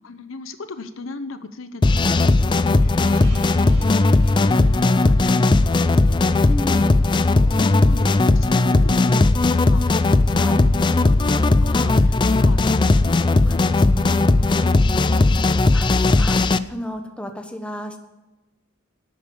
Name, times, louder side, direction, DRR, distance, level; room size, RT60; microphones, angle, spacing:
voice 1, 0.0-6.9 7.3-15.4, left 2 dB, 70° left, 11 dB, 0.9 m, -37 dB
sound 1, 1.8-16.6, left 2 dB, 20° left, 0.4 m, -17 dB
Gong, 3.0-7.8, right 2 dB, 90° right, 4.4 m, -49 dB
voice 2, 6.5-6.9 10.4-10.7 15.7-18.0, equal, 5° left, 5 dB, 1.2 m, -32 dB
12.0 x 8.9 x 7.1 m, 1.1 s
head